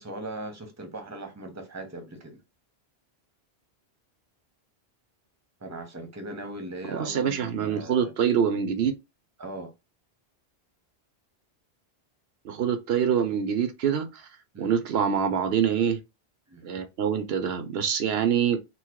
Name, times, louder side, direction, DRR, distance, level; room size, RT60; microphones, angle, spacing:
voice 1, 0.0-2.4 5.6-8.1 9.4-9.7 14.5-14.7 16.5-16.6, right 1 dB, 15° right, 0.8 m, -39 dB
voice 2, 6.9-8.9 12.4-14.2 14.6-16.0 16.6-18.6, right 8 dB, 80° right, 0.9 m, -25 dB
4.1 x 2.1 x 4.6 m
omnidirectional pair, 1.0 m